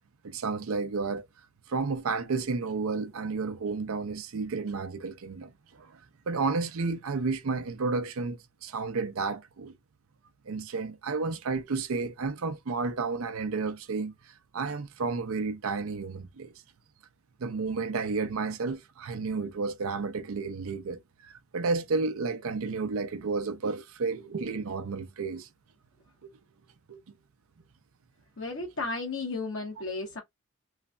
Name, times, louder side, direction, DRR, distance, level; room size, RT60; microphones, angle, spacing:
voice 1, 0.2-1.3 1.7-6.0 6.3-9.8 10.5-16.5 17.4-25.5 26.9-27.0, right 4 dB, 85° right, 0.5 m, -32 dB
voice 2, 28.4-30.2, left 3 dB, 70° left, 1.1 m, -34 dB
3.1 x 2.4 x 2.2 m
head